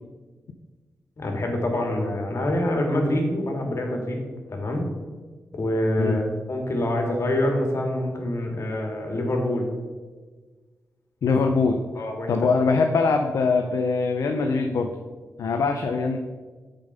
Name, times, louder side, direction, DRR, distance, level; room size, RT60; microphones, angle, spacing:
voice 1, 1.2-4.2 4.5-4.9 5.5-9.7 11.9-12.3, left 1 dB, 55° left, 2 dB, 2.1 m, -25 dB
voice 2, 11.2-11.8 12.3-14.9 15.4-16.2, left 4 dB, 75° left, 4 dB, 0.6 m, -22 dB
7.3 x 5.3 x 5.6 m, 1.4 s
cardioid pair, 45°, 6 cm